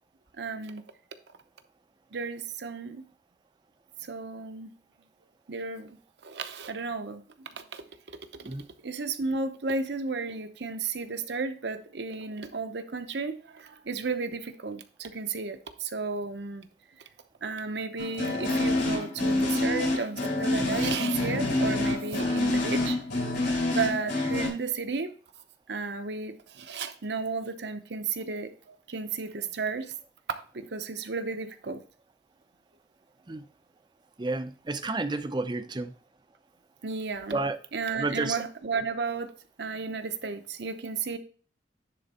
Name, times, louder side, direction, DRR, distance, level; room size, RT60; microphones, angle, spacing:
voice 1, 0.4-0.8 2.1-3.0 4.0-4.7 5.5-6.0 6.2-7.8 8.3-8.5 8.8-16.7 17.4-23.0 23.7-25.1 25.7-29.9 30.3-31.8 36.8-39.3 39.6-41.2, right 4 dB, 65° right, 0.8 m, -33 dB
sound 1, 18.0-24.5, left 2 dB, 70° left, 3.6 m, -27 dB
voice 2, 34.2-35.9 37.3-37.6 38.0-38.4, right 3 dB, 25° right, 0.5 m, -30 dB
10.0 x 3.9 x 4.2 m
head